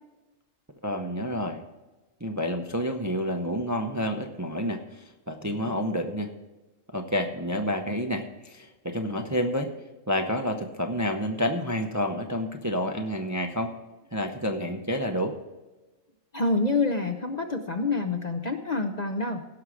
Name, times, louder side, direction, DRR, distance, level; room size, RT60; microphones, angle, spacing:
voice 1, 0.8-1.6 2.2-6.3 6.9-9.7 10.1-13.7 14.1-15.3, equal, 20° right, 5 dB, 0.6 m, -29 dB
voice 2, 16.3-19.4, left 3 dB, 40° left, 5 dB, 0.7 m, -27 dB
16.5 x 6.3 x 4.9 m, 1.2 s
omnidirectional pair, 1.4 m